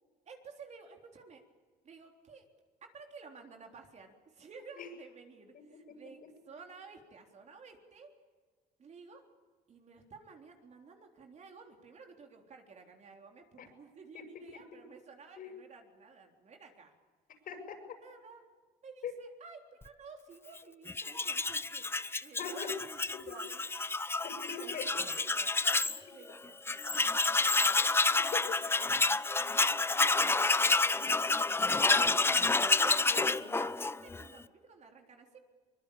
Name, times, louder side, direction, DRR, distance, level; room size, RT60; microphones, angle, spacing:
voice 1, 0.3-1.4 1.8-2.5 2.8-6.2 6.4-8.1 8.8-9.2 9.7-16.9 18.0-18.4 18.8-21.9 22.2-23.7 24.5-25.5 26.1-28.0 28.2-28.9 29.4-32.0 32.6-35.4, right 4 dB, 45° right, 3 dB, 3.7 m, -53 dB
voice 2, 5.5-6.3 13.6-13.7 14.1-14.3 15.4-15.5 17.5-18.0 19.0-19.1 22.4-22.7 23.1-23.2 24.0-24.9 28.3-28.6 32.7-33.5, left 7 dB, 60° left, 5 dB, 6.9 m, -42 dB
Tools, 20.9-26.0 26.3-26.4 26.7-34.3, left 3 dB, 15° left, 0.7 m, -29 dB
23.5 x 22.0 x 8.7 m, 1.5 s
cardioid pair, 110°, 17 cm